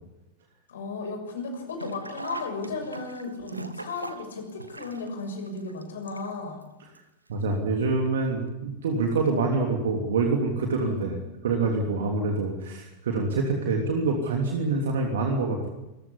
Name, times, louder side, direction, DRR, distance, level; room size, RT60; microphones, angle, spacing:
voice 1, 0.7-6.6 10.8-11.1, left 3 dB, 65° left, 5 dB, 6.6 m, -35 dB
Sink (filling or washing), 1.7-6.6 6.9-7.0 8.1-8.2 8.5-8.6, right 2 dB, 85° right, 1.8 m, -40 dB
voice 2, 7.3-11.2 11.4-15.7, right 3 dB, 60° right, 2 dB, 3.1 m, -26 dB
26.0 x 15.5 x 10.0 m, 0.97 s
figure-of-eight pair, 90°, 0 cm